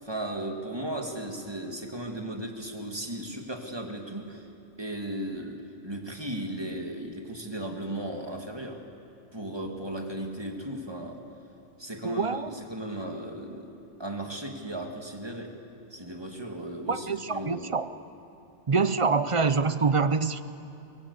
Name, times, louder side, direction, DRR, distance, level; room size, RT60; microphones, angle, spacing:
voice 1, 0.0-4.5 4.8-8.9 9.3-11.2 11.8-13.7 14.0-15.6 15.9-17.7, right 1 dB, 20° right, 3 dB, 2.1 m, -36 dB
voice 2, 12.0-12.6 16.9-17.9 18.7-20.4, right 4 dB, 35° right, 13 dB, 0.5 m, -25 dB
23.5 x 22.5 x 8.2 m, 2.9 s
omnidirectional pair, 1.2 m